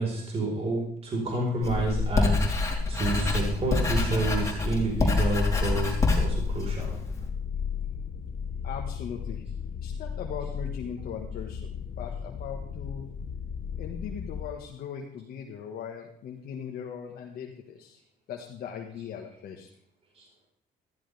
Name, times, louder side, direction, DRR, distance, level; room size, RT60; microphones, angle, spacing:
voice 1, 0.0-2.4 2.9-7.0 20.2-20.3, right 2 dB, 35° right, -1 dB, 4.5 m, -29 dB
Writing, 1.6-7.3, left 3 dB, 20° left, 3.8 m, -26 dB
sound 1, 4.1-14.5, left 7 dB, 45° left, 1.4 m, -35 dB
voice 2, 8.6-9.4 9.8-13.1 13.8-18.0 18.3-19.7, left 7 dB, 60° left, 0 dB, 1.6 m, -39 dB
14.5 x 14.0 x 3.5 m, 0.68 s
cardioid pair, 110°, 17 cm